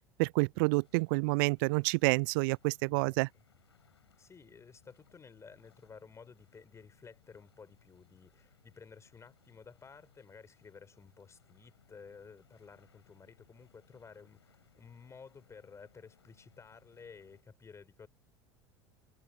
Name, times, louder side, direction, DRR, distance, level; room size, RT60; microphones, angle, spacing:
voice 1, 0.2-3.3, right 29 dB, 50° right, 0.4 m, -28 dB
sound 1, 0.7-17.4, left 7 dB, 75° left, 7.1 m, -68 dB
voice 2, 2.8-3.2 4.2-18.1, left 5 dB, 20° left, 4.5 m, -54 dB
figure-of-eight pair, 75°, 14 cm